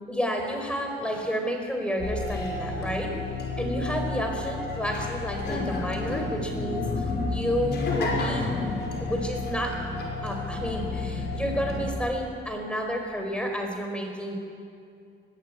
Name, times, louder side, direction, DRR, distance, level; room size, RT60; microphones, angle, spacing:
voice 1, 0.1-3.1 3.6-8.5 9.0-9.7 10.2-14.4, equal, 5° left, 3 dB, 4.6 m, -30 dB
sound 1, 2.0-11.9, left 3 dB, 60° left, 5.5 m, -30 dB
22.0 x 14.0 x 8.7 m, 2.4 s
cardioid pair, 95°, 20 cm